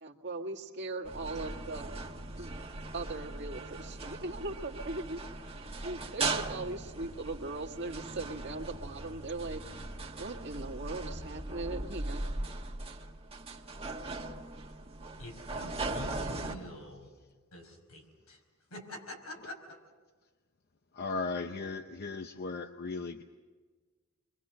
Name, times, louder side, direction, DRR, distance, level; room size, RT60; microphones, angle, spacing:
voice 1, 0.0-1.9 2.4-2.5 2.9-5.2 5.8-9.6 10.2-12.2, right 2 dB, 50° right, 1 dB, 1.8 m, -39 dB
sound 1, 1.0-16.5, right 2 dB, 25° right, 1.3 m, -39 dB
voice 2, 15.2-17.2 17.5-18.4 18.7-19.8, left 1 dB, 90° left, 2 dB, 5.2 m, -46 dB
voice 3, 20.9-23.2, left 3 dB, 45° left, 7 dB, 0.7 m, -36 dB
28.0 x 23.5 x 6.7 m, 1.4 s
head